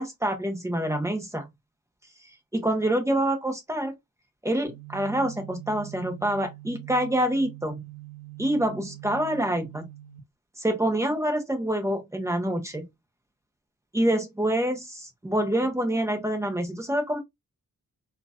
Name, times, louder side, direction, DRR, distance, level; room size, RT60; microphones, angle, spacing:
voice 1, 0.0-1.5 2.5-3.9 4.4-7.8 8.4-9.9 10.6-12.8 13.9-17.2, right 1 dB, 10° right, 0.8 m, -26 dB
sound 1, 4.7-10.2, right 19 dB, 45° right, 1.2 m, -43 dB
4.5 x 2.5 x 2.3 m
wide cardioid pair, 155°, 34 cm